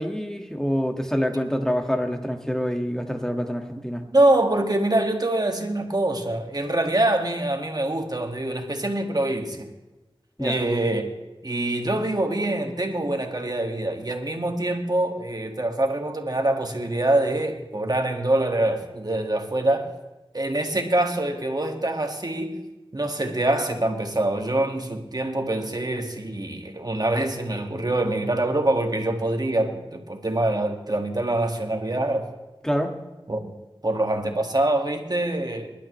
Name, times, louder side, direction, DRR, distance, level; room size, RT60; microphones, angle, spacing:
voice 1, 0.0-4.0 10.4-10.6 32.6-32.9, equal, 5° left, 1.9 m, -26 dB
voice 2, 4.1-9.7 10.4-11.0 11.4-19.9 20.3-22.6 22.9-32.3 33.3-33.5 33.8-35.7, right 1 dB, 45° right, 2.0 m, -24 dB
23.5 x 12.0 x 3.2 m
wide cardioid pair, 40°, 9 cm